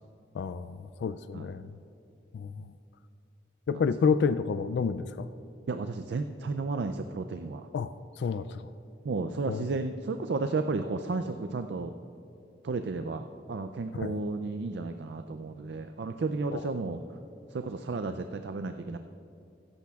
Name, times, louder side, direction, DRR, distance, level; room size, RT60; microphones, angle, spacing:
voice 1, 0.3-1.7 2.3-2.7 3.7-5.3 7.7-7.9 8.2-8.6 9.5-9.7 13.9-14.2 16.5-16.7, left 5 dB, 70° left, 13 dB, 0.3 m, -29 dB
voice 2, 5.7-7.7 9.0-11.9 12.6-17.0 17.5-19.0, right 3 dB, 70° right, 8 dB, 0.4 m, -33 dB
16.5 x 14.0 x 2.4 m, 2.6 s
head